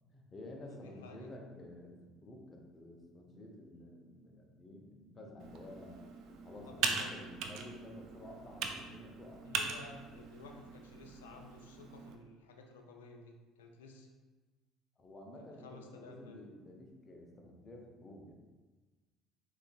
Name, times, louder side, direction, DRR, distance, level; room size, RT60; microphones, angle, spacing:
voice 1, 0.1-6.1 6.4-9.5 15.0-18.3, left 1 dB, 35° left, 1 dB, 0.6 m, -51 dB
voice 2, 0.7-1.3 6.7-7.1 9.4-14.1 15.4-16.4, left 3 dB, 85° left, 2 dB, 0.3 m, -53 dB
Computer keyboard, 5.4-12.2, right 5 dB, 60° right, 0.3 m, -41 dB
3.7 x 2.4 x 2.3 m, 1.3 s
hypercardioid pair, 65°, 0 cm